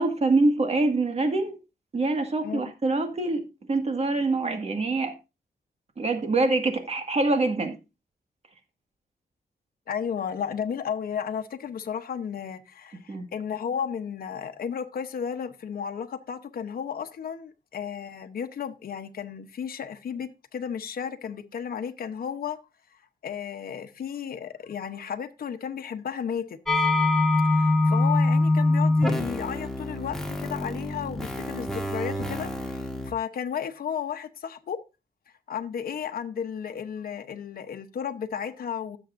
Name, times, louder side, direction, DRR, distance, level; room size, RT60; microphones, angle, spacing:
voice 1, 0.0-1.6 1.9-3.4 3.7-5.1 6.0-7.8 13.1-13.3, right 2 dB, 45° right, 1.9 m, -25 dB
voice 2, 9.9-22.6 23.2-26.9 27.5-34.8 35.5-39.0, left 7 dB, 75° left, 0.9 m, -33 dB
sound 1, 26.7-33.1, left 2 dB, 5° left, 1.8 m, -24 dB
16.0 x 7.1 x 2.6 m
wide cardioid pair, 95°, 15 cm